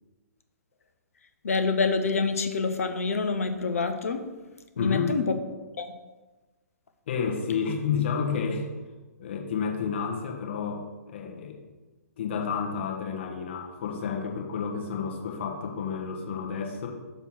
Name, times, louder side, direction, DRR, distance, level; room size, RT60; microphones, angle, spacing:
voice 1, 1.4-4.2 4.8-5.4 5.8-5.9, left 4 dB, 60° left, 9 dB, 0.7 m, -26 dB
voice 2, 4.7-5.2 7.1-8.7 9.2-11.6 12.2-16.9, left 6 dB, 45° left, 0 dB, 1.2 m, -30 dB
6.8 x 3.0 x 5.8 m, 1.2 s
figure-of-eight pair, 120°, 9 cm